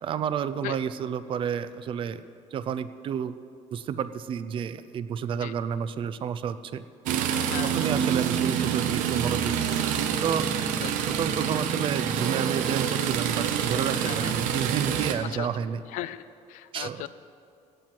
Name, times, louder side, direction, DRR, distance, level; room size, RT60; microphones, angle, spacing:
voice 1, 0.0-2.2 2.5-3.4 3.7-6.8 7.6-9.8 10.2-10.5 11.1-15.8 16.7-17.1, right 8 dB, 40° right, 14 dB, 0.4 m, -30 dB
sound 1, 7.1-15.2, right 8 dB, 85° right, 0.8 m, -27 dB
voice 2, 7.5-7.9 10.8-10.9 14.0-14.3 15.3-15.5 15.9-16.2 16.5-17.1, left 15 dB, 80° left, 15 dB, 0.4 m, -36 dB
16.5 x 7.5 x 4.5 m, 2.5 s
cardioid pair, 150°, 13 cm